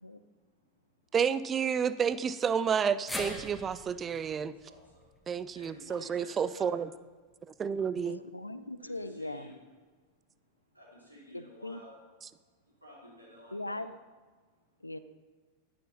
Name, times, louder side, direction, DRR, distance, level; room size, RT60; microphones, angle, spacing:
voice 1, 0.2-1.1 4.5-5.1 5.5-6.7 8.8-9.5 10.7-12.0 12.6-13.8, equal, 90° right, 3.7 m, -53 dB
voice 2, 1.1-4.6 5.3-6.9 7.5-8.2, right 7 dB, 20° right, 0.4 m, -30 dB
sound 1, 3.1-7.3 7.7-7.8 9.0-9.1, left 1 dB, 5° left, 1.4 m, -44 dB
voice 3, 8.0-9.5 11.3-11.8 13.5-14.0 14.8-15.0, left 2 dB, 85° left, 0.5 m, -40 dB
11.5 x 11.0 x 4.1 m
figure-of-eight pair, 90°, 0 cm